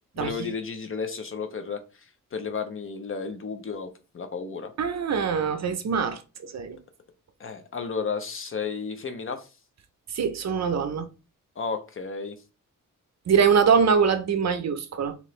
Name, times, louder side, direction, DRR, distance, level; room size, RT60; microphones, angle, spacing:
voice 1, 0.2-4.7 7.4-9.5 11.6-12.4, left 5 dB, 40° left, 0.5 m, -33 dB
voice 2, 4.8-6.8 10.1-11.1 13.3-15.2, right 6 dB, 55° right, 0.5 m, -23 dB
4.3 x 2.8 x 3.1 m
wide cardioid pair, 180°, 33 cm